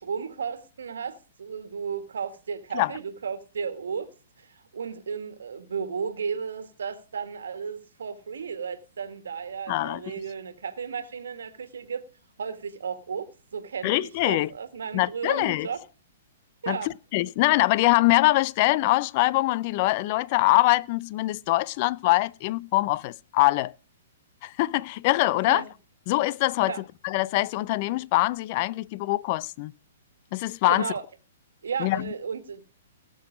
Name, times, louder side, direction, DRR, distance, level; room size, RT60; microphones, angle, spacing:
voice 1, 0.0-12.1 12.4-15.8 16.6-16.9 25.4-25.7 26.6-26.8 30.7-31.0 31.6-32.6, right 6 dB, 75° right, 1.6 m, -34 dB
voice 2, 9.7-10.0 13.8-14.5 14.9-15.7 16.7-23.7 24.4-25.6 26.1-26.7 27.0-29.7 30.3-30.9 31.8-32.1, left 19 dB, 45° left, 0.5 m, -23 dB
18.5 x 6.2 x 5.0 m
hypercardioid pair, 120°, 0 cm